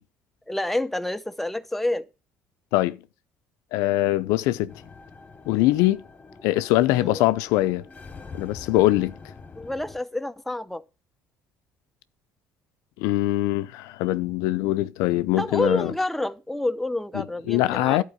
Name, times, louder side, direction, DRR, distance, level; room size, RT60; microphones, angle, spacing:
voice 1, 0.5-2.0 6.9-7.2 9.6-10.8 15.4-18.0, left 1 dB, 5° left, 0.6 m, -28 dB
voice 2, 3.7-4.7 5.5-6.0 6.4-7.8 8.3-9.1 13.0-15.9 17.1-18.0, left 16 dB, 85° left, 0.6 m, -22 dB
sound 1, 4.7-10.0, left 4 dB, 25° left, 1.0 m, -45 dB
11.0 x 4.5 x 6.4 m
cardioid pair, 100°, 6 cm